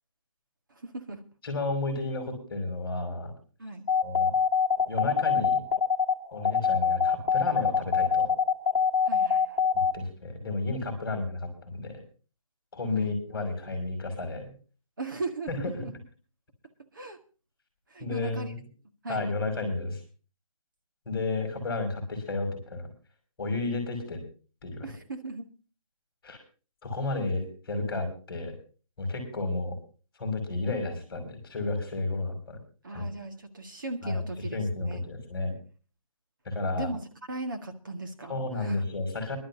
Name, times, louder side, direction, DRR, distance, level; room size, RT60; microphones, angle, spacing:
voice 1, 0.7-1.2 3.6-3.9 9.0-9.6 12.9-13.2 15.0-15.9 16.9-17.2 17.9-18.5 19.0-19.3 24.8-25.5 32.8-35.1 36.7-37.0 37.3-38.8, right 2 dB, 35° right, 4 dB, 1.8 m, -38 dB
voice 2, 1.4-3.3 4.0-4.3 4.9-5.6 6.3-8.3 9.9-12.0 12.7-14.5 15.5-15.7 18.0-18.6 19.1-20.0 21.0-22.9 23.4-24.2 24.6-24.9 26.2-26.4 26.8-28.5 29.0-29.8 30.2-32.6 32.9-33.1 34.0-34.2 34.5-35.5 36.4-36.9 38.3-39.4, left 2 dB, 10° left, 1 dB, 4.9 m, -32 dB
sound 1, 3.9-9.9, left 6 dB, 30° left, 1.8 m, -23 dB
23.5 x 12.5 x 2.8 m, 0.36 s
hypercardioid pair, 180°, 18 cm